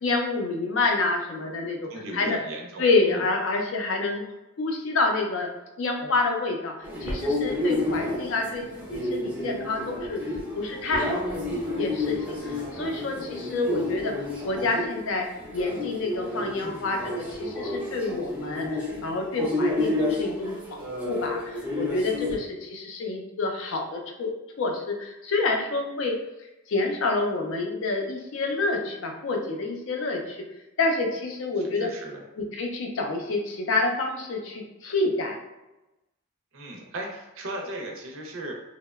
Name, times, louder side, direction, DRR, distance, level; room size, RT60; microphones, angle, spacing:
voice 1, 0.0-1.8 2.1-2.4 2.8-4.2 4.6-5.5 5.8-10.2 10.6-12.2 12.4-14.1 14.4-15.3 15.5-20.6 21.0-24.3 24.6-26.1 26.7-30.4 30.8-31.9 32.4-35.4, left 3 dB, 55° left, 2 dB, 0.4 m, -28 dB
voice 2, 1.9-3.2 31.6-32.2 36.5-38.5, right 1 dB, 60° right, 0 dB, 0.5 m, -37 dB
sound 1, 6.8-22.4, left 2 dB, 5° right, 0.5 m, -30 dB
2.8 x 2.0 x 2.3 m, 1.0 s
head